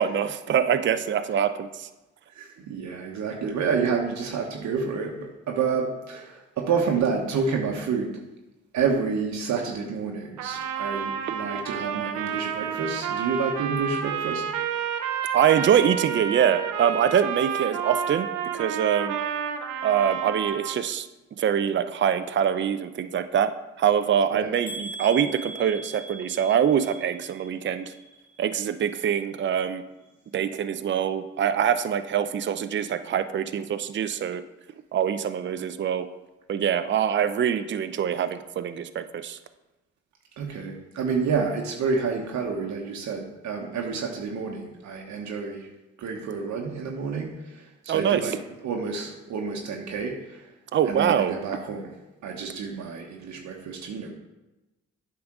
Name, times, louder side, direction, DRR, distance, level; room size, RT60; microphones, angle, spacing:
voice 1, 0.0-1.9 15.3-19.2 19.8-21.1 21.4-23.5 23.8-27.9 28.4-29.8 30.3-34.4 34.9-36.1 36.5-39.4 47.9-48.4 50.7-51.3, right 8 dB, 40° right, 10 dB, 0.5 m, -24 dB
voice 2, 2.3-8.2 8.7-14.4 24.3-24.5 40.4-45.7 46.0-48.4 48.6-50.5 50.8-51.9 52.2-54.1, right 5 dB, 65° right, 1 dB, 1.1 m, -29 dB
Trumpet, 10.4-20.8, right 8 dB, 85° right, 0.7 m, -30 dB
sound 1, 24.7-28.6 28.9-29.5 30.0-30.1 30.5-30.6, right 2 dB, 60° left, 1.7 m, -41 dB
8.5 x 3.9 x 6.0 m, 1.1 s
supercardioid pair, 60°, 30 cm